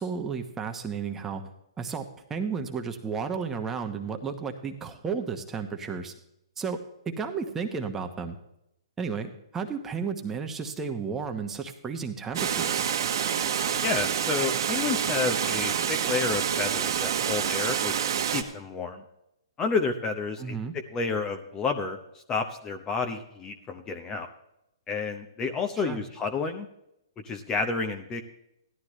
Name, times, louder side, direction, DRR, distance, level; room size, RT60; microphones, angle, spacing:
voice 1, 0.0-1.4 1.8-2.0 2.3-6.1 6.6-6.8 7.0-8.4 9.0-12.8 20.4-20.7 25.8-26.0, right 5 dB, 15° right, 5 dB, 1.1 m, -33 dB
Water, 12.3-18.4, right 8 dB, 55° right, 1.3 m, -27 dB
voice 2, 13.8-18.1 18.3-19.0 19.6-22.0 22.3-24.3 24.9-26.7 27.2-28.2, left 4 dB, 20° left, 7 dB, 0.9 m, -30 dB
16.0 x 12.0 x 3.2 m, 0.82 s
hypercardioid pair, 140°, 3 cm